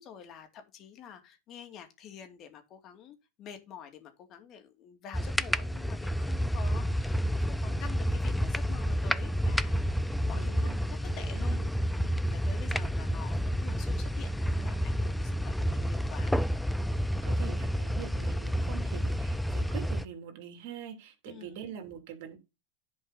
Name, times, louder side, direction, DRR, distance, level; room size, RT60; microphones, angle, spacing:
voice 1, 0.0-10.7 11.2-11.6 12.0-16.3 21.3-21.6, left 7 dB, 45° left, 2.6 m, -48 dB
sound 1, 5.1-20.1, equal, ahead, 0.5 m, -30 dB
voice 2, 10.3-10.7 11.1-11.7 17.2-22.4, right 9 dB, 70° right, 2.9 m, -44 dB
10.5 x 5.3 x 4.1 m
hypercardioid pair, 110°, 0 cm